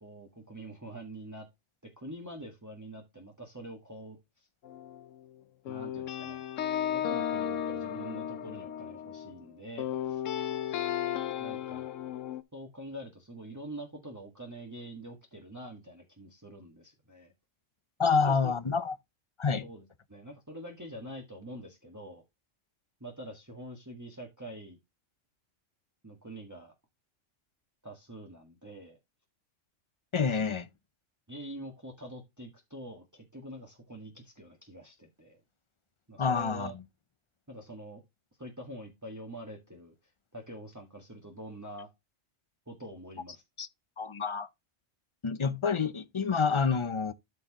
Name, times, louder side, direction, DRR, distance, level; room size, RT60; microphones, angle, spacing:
voice 1, 0.0-1.5 1.8-4.2 5.7-6.5 6.9-10.2 11.4-11.9 12.5-17.3 18.0-18.5 19.6-19.8 20.1-22.2 23.0-24.8 26.0-26.7 27.8-29.0 30.3-30.4 31.3-35.4 36.1-36.7 37.5-38.0 38.4-40.0 40.3-41.9 42.7-43.4, right 1 dB, 15° right, 1.6 m, -45 dB
sound 1, 4.6-5.2 5.6-9.4 9.8-12.4, left 10 dB, 90° left, 1.1 m, -34 dB
voice 2, 18.0-18.9 19.4-19.7 30.1-30.7 36.2-36.8 43.6-43.7 44.0-44.5 45.2-47.1, left 5 dB, 35° left, 0.5 m, -28 dB
12.5 x 4.6 x 2.9 m
omnidirectional pair, 1.3 m